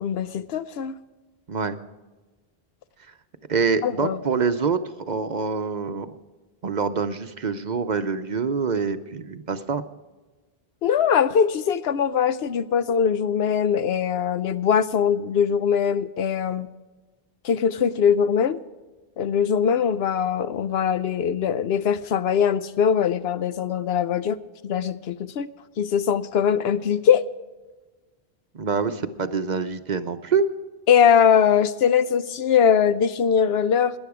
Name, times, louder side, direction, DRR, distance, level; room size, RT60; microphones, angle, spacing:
voice 1, 0.0-1.0 3.8-4.2 10.8-16.7 17.4-18.6 19.2-24.4 24.6-25.5 25.8-27.2 30.9-33.9, left 7 dB, 75° left, 14 dB, 0.9 m, -21 dB
voice 2, 3.5-4.8 5.1-6.1 6.6-9.8 28.5-30.5, right 5 dB, 50° right, 10 dB, 0.7 m, -25 dB
18.5 x 10.5 x 4.8 m, 1.2 s
omnidirectional pair, 1.1 m